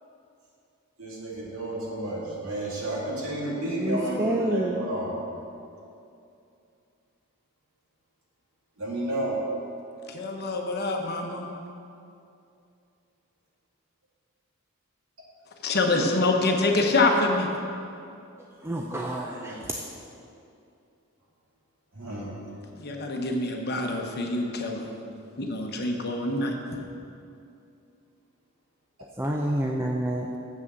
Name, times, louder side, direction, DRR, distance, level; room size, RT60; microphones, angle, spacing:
voice 1, 1.0-5.2 8.8-9.4 19.3-19.9 21.9-22.7, right 1 dB, 70° right, -5 dB, 2.4 m, -32 dB
voice 2, 3.8-4.8 18.6-19.9 29.2-30.3, right 1 dB, 10° right, 0 dB, 0.4 m, -28 dB
voice 3, 10.1-11.5 15.6-17.5 22.8-24.9 25.4-26.6, left 2 dB, 45° left, 2 dB, 1.0 m, -25 dB
7.4 x 6.3 x 7.6 m, 2.6 s
head